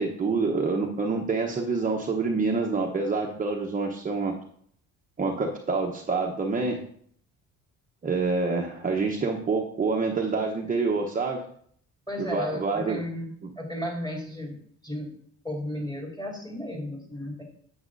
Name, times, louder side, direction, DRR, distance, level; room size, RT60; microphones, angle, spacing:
voice 1, 0.0-4.3 5.2-6.8 8.0-11.4 12.2-13.0, right 4 dB, 25° right, 1 dB, 0.9 m, -27 dB
voice 2, 12.1-14.5 14.8-15.1 15.4-17.4, left 1 dB, 15° left, 0 dB, 4.1 m, -34 dB
9.6 x 8.1 x 2.6 m, 0.62 s
cardioid pair, 100°, 32 cm